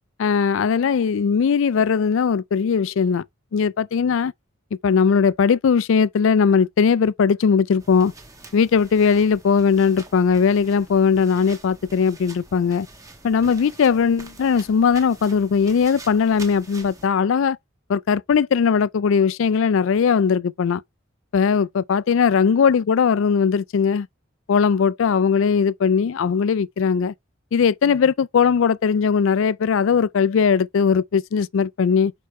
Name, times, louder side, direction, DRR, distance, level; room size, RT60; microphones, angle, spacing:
voice 1, 0.2-3.2 3.5-4.3 4.8-8.1 8.5-12.9 13.2-17.6 17.9-20.8 21.3-24.1 24.5-27.1 27.5-32.1, left 6 dB, 65° left, 0.3 m, -19 dB
sound 1, 7.8-17.1, right 2 dB, 15° right, 1.1 m, -45 dB
6.5 x 4.7 x 3.1 m
head